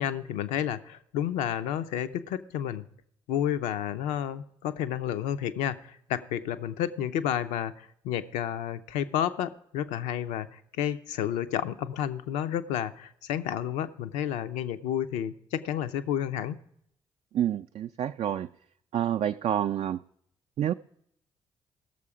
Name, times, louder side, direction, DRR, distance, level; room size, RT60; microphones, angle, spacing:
voice 1, 0.0-2.9 3.3-16.6, left 10 dB, 80° left, 0.6 m, -31 dB
voice 2, 17.3-18.5 18.9-20.0 20.6-20.7, right 10 dB, 55° right, 0.4 m, -28 dB
16.0 x 6.8 x 4.9 m
hypercardioid pair, 45°, 12 cm